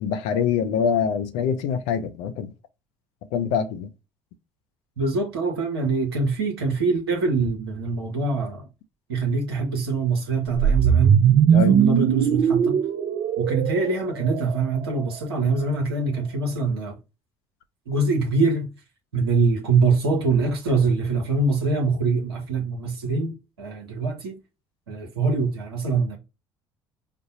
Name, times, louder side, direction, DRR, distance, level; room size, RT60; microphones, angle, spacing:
voice 1, 0.0-2.5 3.3-3.9 11.5-11.8, left 7 dB, 65° left, 0.5 m, -24 dB
voice 2, 5.0-8.7 9.1-11.2 11.5-12.8 13.4-17.0 17.9-18.7 19.1-24.4 24.9-26.2, right 4 dB, 90° right, 0.8 m, -24 dB
sound 1, 10.6-14.8, right 8 dB, 50° right, 0.4 m, -20 dB
5.0 x 2.0 x 2.6 m
hypercardioid pair, 55°, 13 cm